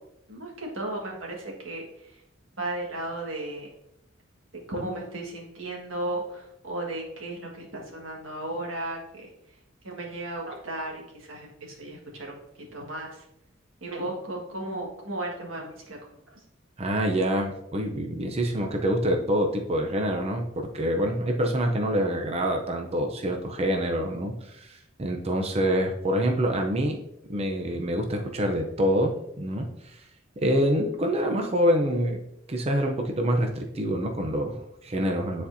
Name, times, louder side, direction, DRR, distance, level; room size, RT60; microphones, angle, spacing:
voice 1, 0.3-2.2 2.6-3.7 4.7-9.6 9.8-13.3 13.8-16.4, right 1 dB, 75° right, -1 dB, 1.8 m, -35 dB
voice 2, 16.8-27.0 27.3-30.0 30.4-32.2 32.5-35.5, equal, 30° right, 3 dB, 0.6 m, -26 dB
9.7 x 4.2 x 2.7 m, 0.79 s
head